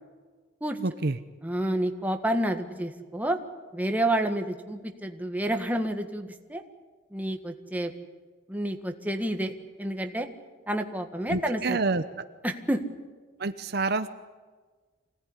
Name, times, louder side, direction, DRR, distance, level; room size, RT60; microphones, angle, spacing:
voice 1, 0.8-1.2 11.3-12.0 13.4-14.1, right 3 dB, 55° right, 10 dB, 0.9 m, -27 dB
voice 2, 1.4-3.4 3.7-6.6 7.1-7.9 8.5-9.5 9.8-10.3 10.7-11.8 12.4-12.8, right 1 dB, 10° right, 5 dB, 1.7 m, -29 dB
26.0 x 18.0 x 9.9 m, 1.4 s
head